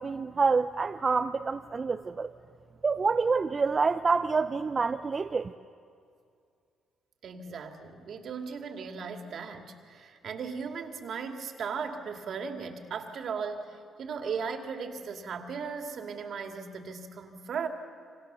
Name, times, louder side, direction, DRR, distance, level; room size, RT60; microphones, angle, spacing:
voice 1, 0.0-2.3 2.8-5.5, right 4 dB, 40° right, 8 dB, 0.7 m, -27 dB
voice 2, 7.2-17.7, right 5 dB, 65° right, 4 dB, 2.6 m, -37 dB
28.0 x 25.0 x 6.9 m, 2.3 s
supercardioid pair, 60°, 0 cm